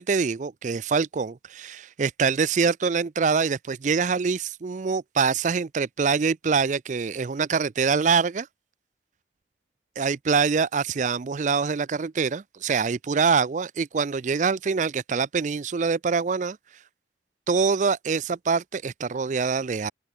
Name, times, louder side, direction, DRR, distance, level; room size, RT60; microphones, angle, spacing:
voice 1, 0.0-8.5 10.0-16.6 17.5-19.9, right 5 dB, 45° right, 0.4 m, -24 dB
open air
head